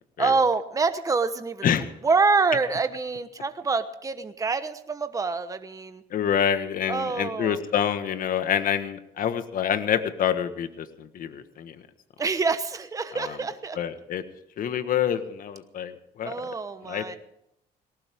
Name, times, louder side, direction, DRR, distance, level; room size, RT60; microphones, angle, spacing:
voice 1, 0.2-1.7 2.0-6.0 6.9-7.6 12.2-13.8 16.2-17.2, right 4 dB, 20° right, 9 dB, 1.1 m, -26 dB
voice 2, 6.1-11.8 13.1-13.4 13.7-14.2 14.6-16.3 16.8-17.2, left 9 dB, 55° left, 10 dB, 1.5 m, -27 dB
19.0 x 18.5 x 3.7 m, 0.78 s
cardioid pair, 110°, 17 cm